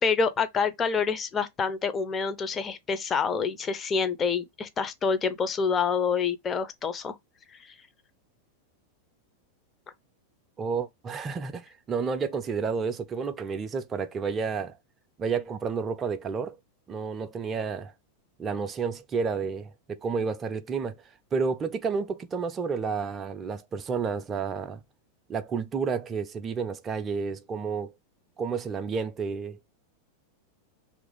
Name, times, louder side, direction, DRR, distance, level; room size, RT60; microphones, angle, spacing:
voice 1, 0.0-7.2 7.6-7.7, left 5 dB, 25° left, 0.6 m, -27 dB
voice 2, 10.6-14.8 15.2-16.6 16.9-17.9 18.4-21.0 21.3-24.8 25.3-27.9 28.4-29.6, right 5 dB, 25° right, 0.5 m, -30 dB
2.9 x 2.6 x 3.7 m
figure-of-eight pair, 90°, 0 cm